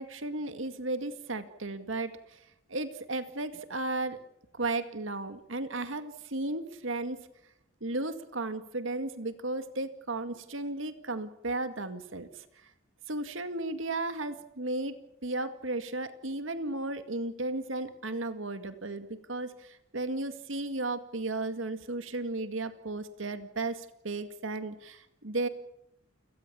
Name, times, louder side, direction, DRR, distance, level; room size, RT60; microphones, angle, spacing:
voice 1, 0.0-2.4 2.7-4.2 4.5-7.3 7.8-12.7 13.1-25.5, right 2 dB, 75° right, 10 dB, 2.1 m, -35 dB
29.5 x 18.0 x 7.0 m, 0.79 s
head